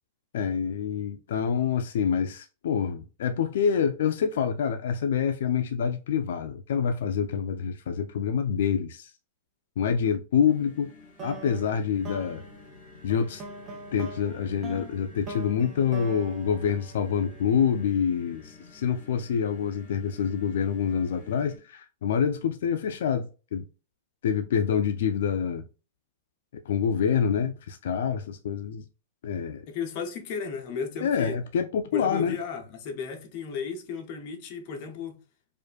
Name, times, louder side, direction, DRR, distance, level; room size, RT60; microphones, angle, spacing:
voice 1, 0.3-9.1 9.8-10.9 11.2-12.4 13.0-13.4 13.9-23.6 24.2-25.6 26.7-28.8 29.2-29.7 31.0-32.4, left 7 dB, 65° left, 0.3 m, -26 dB
sound 1, 10.5-21.6, left 3 dB, 5° left, 1.7 m, -51 dB
sound 2, 11.2-17.6, right 3 dB, 20° right, 0.6 m, -43 dB
voice 2, 29.7-31.4 31.9-35.2, left 6 dB, 35° left, 0.7 m, -34 dB
4.8 x 2.4 x 2.2 m
supercardioid pair, 170°, 0 cm